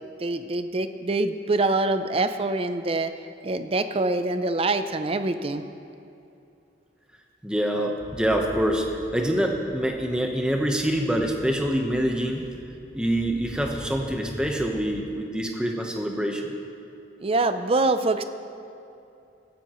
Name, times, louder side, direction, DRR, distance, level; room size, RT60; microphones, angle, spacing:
voice 1, 0.0-3.1 3.4-5.6 17.2-18.2, right 2 dB, 30° right, 10 dB, 0.5 m, -25 dB
voice 2, 7.4-12.4 12.9-16.5, right 1 dB, 5° right, 1 dB, 1.0 m, -25 dB
sound 1, 8.0-14.9, equal, 50° left, 3.1 m, -44 dB
17.0 x 14.0 x 3.1 m, 2.7 s
head